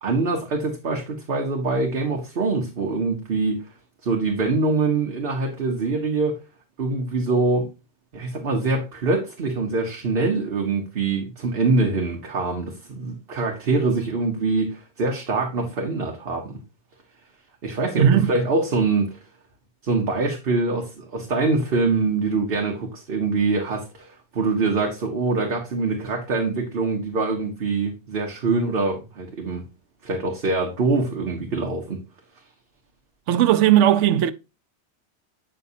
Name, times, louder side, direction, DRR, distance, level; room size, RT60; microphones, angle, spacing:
voice 1, 0.0-3.7 4.0-6.4 6.8-7.7 8.1-16.6 17.6-19.2 19.8-29.6 30.0-32.0, right 3 dB, 55° right, 1.2 m, -24 dB
voice 2, 18.0-18.3 33.3-34.3, right 11 dB, 75° right, 0.9 m, -17 dB
8.2 x 5.8 x 2.6 m
omnidirectional pair, 1.2 m